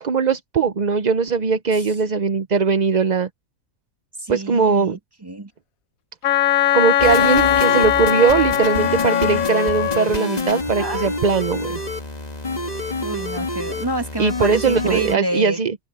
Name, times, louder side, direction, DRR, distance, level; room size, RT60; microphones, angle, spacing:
voice 1, 0.0-3.3 4.3-5.0 6.7-11.8 14.2-15.8, right 5 dB, 45° right, 0.6 m, -20 dB
voice 2, 4.2-5.5 10.8-11.1 13.0-15.6, right 2 dB, 15° right, 2.1 m, -28 dB
Wind instrument woodwind instrument, 6.2-10.1, left 11 dB, 75° left, 1.2 m, -19 dB
sound 1, 7.0-15.2, left 2 dB, 30° left, 1.7 m, -27 dB
omnidirectional pair, 1.5 m